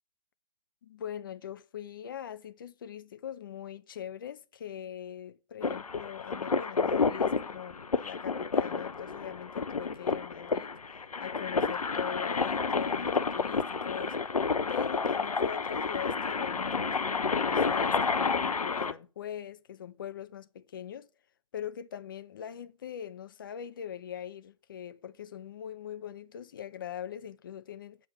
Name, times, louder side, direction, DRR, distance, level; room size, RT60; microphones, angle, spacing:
voice 1, 0.8-14.2 14.7-21.1 21.5-28.0, left 9 dB, 35° left, 0.5 m, -41 dB
sound 1, 5.6-18.9, left 5 dB, 75° left, 0.8 m, -30 dB
8.2 x 4.1 x 5.6 m
figure-of-eight pair, 140°, 19 cm